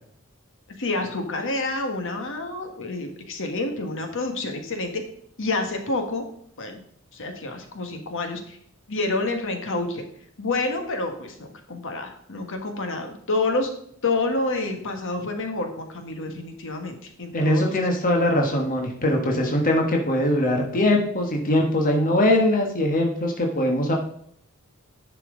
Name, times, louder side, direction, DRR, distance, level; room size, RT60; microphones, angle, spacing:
voice 1, 0.8-4.9 5.4-6.2 6.6-6.8 7.1-8.6 8.9-10.0 10.4-13.7 14.0-17.8, left 2 dB, 60° left, 5 dB, 1.5 m, -28 dB
voice 2, 17.3-23.9, left 1 dB, 40° left, 1 dB, 1.3 m, -21 dB
10.5 x 5.9 x 3.8 m, 0.67 s
head